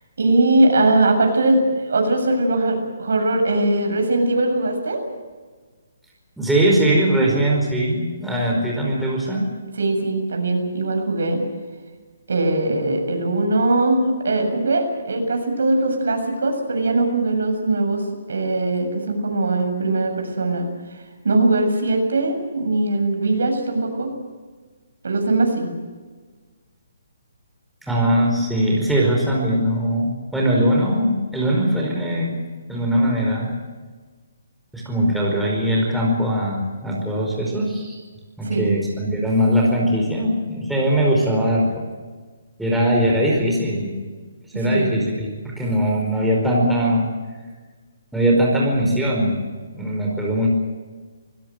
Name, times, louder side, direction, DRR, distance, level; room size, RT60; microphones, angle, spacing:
voice 1, 0.2-5.0 7.1-7.4 9.7-11.4 12.3-18.0 18.3-20.7 21.2-24.1 25.0-25.7 38.4-38.8 44.7-45.0, right 2 dB, 80° right, 4 dB, 7.3 m, -20 dB
voice 2, 6.4-9.5 27.8-32.4 32.7-33.5 34.7-38.0 38.4-41.8 42.6-44.0 44.5-47.1 48.1-49.4 49.7-50.5, equal, ahead, -3 dB, 5.0 m, -20 dB
25.0 x 17.0 x 7.9 m, 1.4 s
hypercardioid pair, 160°, 0 cm